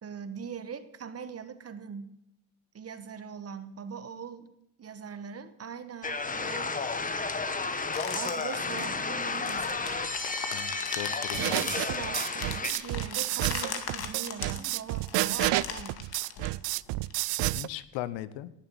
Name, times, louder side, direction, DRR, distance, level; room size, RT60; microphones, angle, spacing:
voice 1, 0.0-2.2 2.7-4.5 4.8-6.8 8.1-10.2 11.4-16.0, right 6 dB, 30° right, 12 dB, 1.3 m, -41 dB
sound 1, 6.0-12.7, left 4 dB, 20° left, 1.2 m, -32 dB
sound 2, 7.9-17.1, left 8 dB, 55° left, 2.2 m, -39 dB
voice 2, 10.5-11.6 17.4-18.5, left 13 dB, 80° left, 17 dB, 1.0 m, -38 dB
sound 3, 11.3-17.7, right 22 dB, 65° right, 0.5 m, -30 dB
19.0 x 7.4 x 7.1 m, 0.83 s
supercardioid pair, 95°, 45 cm